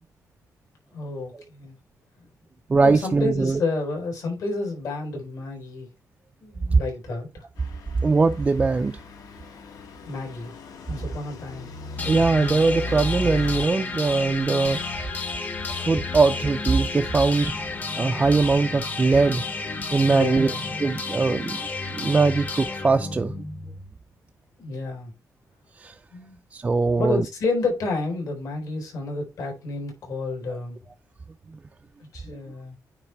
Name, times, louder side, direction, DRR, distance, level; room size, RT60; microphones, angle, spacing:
voice 1, 0.9-1.8 2.8-5.9 6.4-7.4 10.1-10.5 10.9-11.7 20.0-20.8 24.6-25.1 26.1-26.4 27.0-30.8 32.0-32.8, left 3 dB, 65° left, 4.1 m, -30 dB
voice 2, 2.7-3.6 6.7-6.8 8.0-9.0 12.1-14.8 15.7-17.6 18.0-19.4 19.9-20.5 20.8-21.6 21.9-23.3 25.8-25.9 26.5-27.2, right 4 dB, 20° right, 0.4 m, -21 dB
Truck / Idling, 7.6-13.7, left 2 dB, 90° left, 1.5 m, -36 dB
sound 1, 12.0-23.9, left 3 dB, 30° left, 0.9 m, -31 dB
9.2 x 3.5 x 4.6 m
wide cardioid pair, 170°, 6 cm